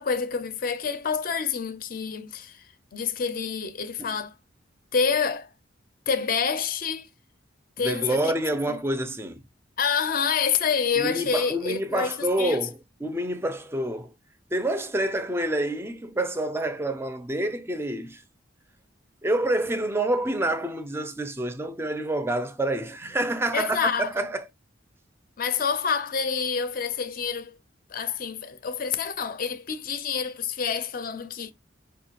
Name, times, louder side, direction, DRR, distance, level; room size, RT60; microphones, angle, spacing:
voice 1, 0.0-2.6 2.9-4.3 4.9-5.5 6.1-7.1 7.8-8.2 8.7-8.8 9.8-12.6 23.5-24.3 25.4-27.5 27.9-31.5, left 6 dB, 50° left, 0.5 m, -27 dB
voice 2, 7.8-9.4 11.0-14.1 14.5-18.2 19.2-24.4, right 1 dB, 15° right, 0.4 m, -27 dB
4.8 x 2.2 x 2.8 m
head